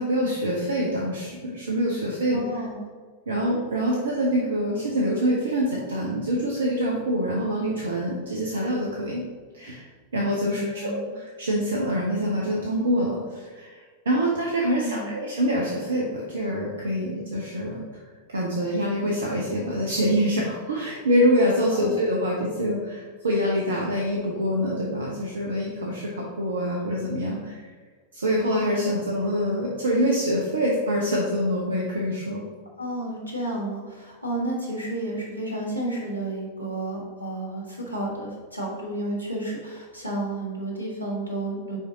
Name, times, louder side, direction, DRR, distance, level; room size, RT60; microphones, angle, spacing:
voice 1, 0.0-2.6 3.3-9.2 9.5-9.9 10.1-18.0 18.3-27.7 28.1-32.4, equal, 70° right, -2 dB, 0.9 m, -25 dB
voice 2, 2.3-2.8 10.4-11.1 14.7-15.1 21.7-22.0 32.8-41.8, right 1 dB, 85° right, -3 dB, 1.5 m, -31 dB
5.1 x 4.9 x 3.9 m, 1.5 s
figure-of-eight pair, 90°, 0 cm